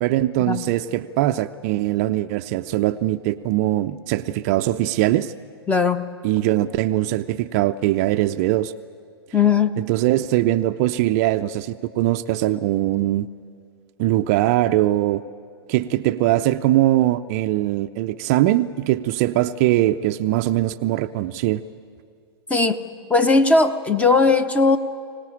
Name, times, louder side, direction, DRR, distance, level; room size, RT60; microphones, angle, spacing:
voice 1, 0.0-5.3 6.2-8.7 9.8-13.3 14.0-15.2 15.7-21.6, right 15 dB, 35° right, 10 dB, 0.5 m, -21 dB
voice 2, 5.7-6.0 9.3-9.7 22.5-22.8 23.1-24.8, left 4 dB, 10° left, 12 dB, 0.8 m, -18 dB
24.5 x 18.5 x 8.8 m, 2.2 s
figure-of-eight pair, 105°, 14 cm